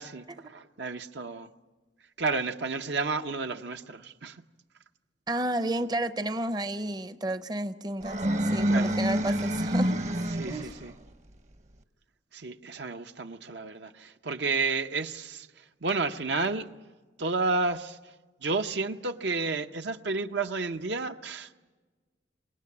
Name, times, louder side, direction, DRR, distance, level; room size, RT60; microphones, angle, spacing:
voice 1, 0.0-1.5 2.2-4.4 8.7-9.0 10.4-10.9 12.3-16.7 17.2-18.1 18.4-21.5, right 3 dB, 70° right, 0.8 m, -31 dB
voice 2, 5.3-10.0 10.5-10.7, right 1 dB, 25° right, 0.7 m, -31 dB
sound 1, 8.0-10.9, equal, 40° right, 1.0 m, -27 dB
27.0 x 18.5 x 8.5 m
head